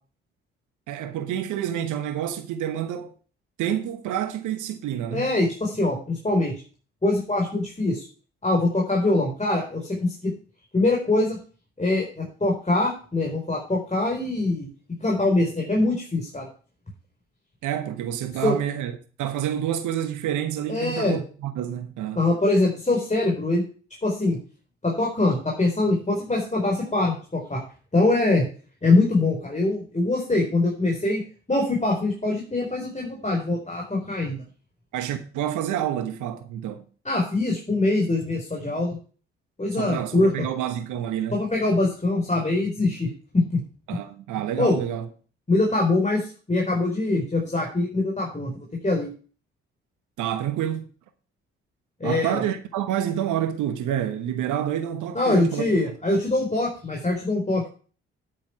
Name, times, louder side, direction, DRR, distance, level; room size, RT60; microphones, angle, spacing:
voice 1, 0.9-3.1 3.6-5.3 17.6-18.9 19.2-22.2 34.9-36.8 39.7-41.4 43.9-45.1 50.2-50.9 52.0-55.7, right 10 dB, 70° right, 1.3 m, -28 dB
voice 2, 5.1-6.6 7.0-8.0 8.4-10.3 10.7-11.4 11.8-14.7 15.0-16.5 18.4-18.5 20.7-21.2 22.1-23.6 24.0-24.4 24.8-27.6 27.9-28.4 28.8-31.2 31.5-34.4 37.0-39.0 39.6-40.5 41.3-43.6 43.9-44.0 44.6-44.8 45.5-49.1 52.0-52.4 55.1-57.7, left 2 dB, 20° left, 4.7 m, -23 dB
10.0 x 8.7 x 4.6 m
hypercardioid pair, 45°, 32 cm